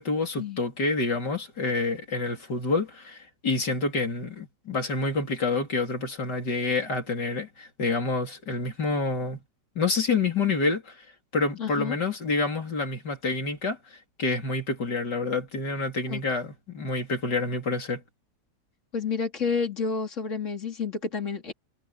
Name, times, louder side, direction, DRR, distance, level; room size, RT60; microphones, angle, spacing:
voice 1, 0.0-9.4 9.8-11.0 11.3-18.0, left 3 dB, 90° left, 4.3 m, -28 dB
voice 2, 11.6-12.0 16.1-16.2 18.9-21.5, left 5 dB, 45° left, 3.3 m, -30 dB
omnidirectional pair, 1.8 m